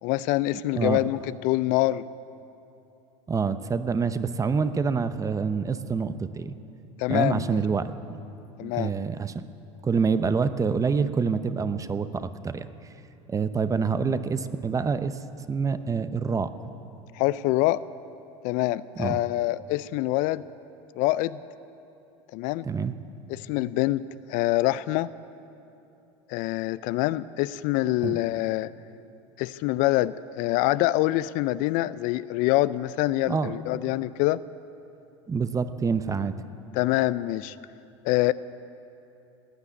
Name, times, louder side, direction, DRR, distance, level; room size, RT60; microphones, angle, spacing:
voice 1, 0.0-2.0 7.0-7.6 8.6-8.9 17.1-17.8 18.4-20.4 20.9-21.4 22.3-22.7 23.3-24.0 24.3-25.1 26.3-28.7 29.4-34.4 36.7-37.6 38.0-38.3, left 17 dB, 60° left, 17 dB, 0.4 m, -25 dB
voice 2, 3.3-6.5 7.1-8.2 8.6-9.5 9.8-12.7 13.3-15.2 15.5-16.5 19.0-19.2 22.6-22.9 28.0-28.2 33.3-33.5 35.3-36.3, right 5 dB, 20° right, 12 dB, 0.7 m, -26 dB
17.5 x 9.8 x 8.4 m, 2.8 s
supercardioid pair, 95°, 15 cm